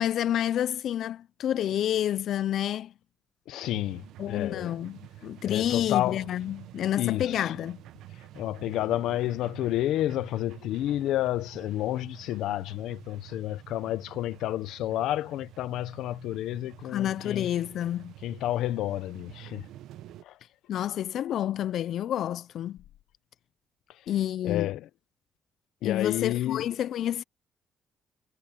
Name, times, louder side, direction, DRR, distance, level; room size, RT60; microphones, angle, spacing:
voice 1, 0.0-2.9 4.2-7.8 16.9-18.1 20.7-22.8 24.1-24.7 25.8-27.2, left 11 dB, 70° left, 0.4 m, -29 dB
voice 2, 3.5-4.8 5.4-6.3 7.0-7.5 8.3-17.5 18.2-19.7 20.2-20.4 24.4-24.9 25.8-26.6, left 14 dB, 90° left, 0.7 m, -30 dB
sound 1, 3.6-20.2, right 13 dB, 85° right, 1.0 m, -48 dB
cardioid pair, 90°, 0 cm